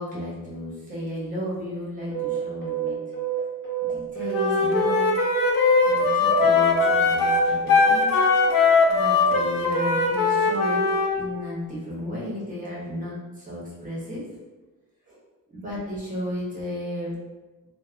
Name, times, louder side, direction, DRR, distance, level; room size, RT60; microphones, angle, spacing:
voice 1, 0.0-3.0 3.8-5.1 5.8-8.2 8.9-10.8 11.1-14.2 15.6-17.1, left 1 dB, 25° right, -6 dB, 0.7 m, -34 dB
sound 1, 2.1-5.4 5.7-8.5, right 11 dB, 35° left, 0.6 m, -30 dB
Wind instrument woodwind instrument, 4.3-11.1, left 4 dB, 70° left, 0.5 m, -20 dB
2.9 x 2.0 x 2.4 m, 1.2 s
cardioid pair, 150°, 35 cm